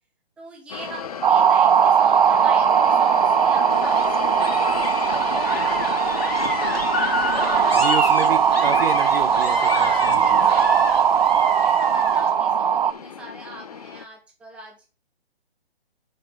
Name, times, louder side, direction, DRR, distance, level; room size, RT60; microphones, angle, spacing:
voice 1, 0.4-8.6 9.7-14.9, right 2 dB, 5° right, 0 dB, 0.9 m, -42 dB
sound 1, 0.7-14.0, left 7 dB, 40° left, 0.4 m, -33 dB
sound 2, 1.2-12.9, right 8 dB, 50° right, 0.5 m, -19 dB
sound 3, 3.7-12.3, left 3 dB, 70° left, 2.0 m, -30 dB
voice 2, 7.7-10.4, right 6 dB, 65° right, 11 dB, 1.0 m, -30 dB
5.8 x 5.5 x 5.7 m, 0.35 s
figure-of-eight pair, 140°, 32 cm